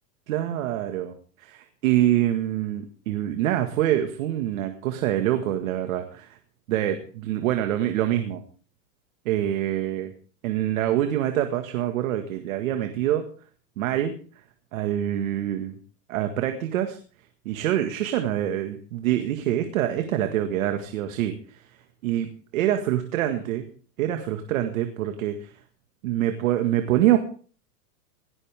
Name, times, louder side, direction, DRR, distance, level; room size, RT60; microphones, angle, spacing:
voice 1, 0.3-1.1 1.4-1.5 1.8-6.4 6.7-8.4 9.3-10.1 10.4-13.3 13.8-14.1 14.7-15.7 16.1-17.0 17.5-21.3 22.0-22.3 22.5-23.7 24.0-25.5 26.0-27.2, right 12 dB, 55° right, 7 dB, 1.9 m, -25 dB
18.0 x 16.5 x 3.6 m, 0.42 s
supercardioid pair, 170°, 48 cm